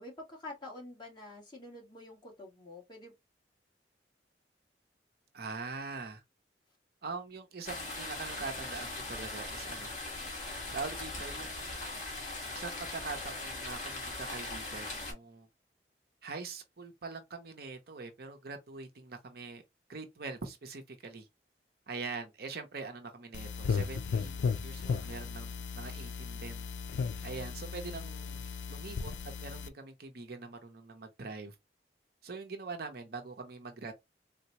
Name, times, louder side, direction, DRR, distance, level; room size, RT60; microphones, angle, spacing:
voice 1, 0.0-3.1, left 2 dB, 25° left, 1.3 m, -47 dB
voice 2, 5.3-6.2 7.0-9.9 10.5-11.8 12.5-15.5 16.2-19.6 19.9-21.3 21.9-26.7 27.2-28.4 28.7-29.1 29.4-31.6 32.2-33.9, right 4 dB, 60° right, 0.6 m, -43 dB
sound 1, 7.6-15.1, left 2 dB, 45° left, 1.5 m, -40 dB
sound 2, 23.3-29.7, left 5 dB, 90° left, 0.4 m, -36 dB
3.9 x 2.1 x 2.8 m
head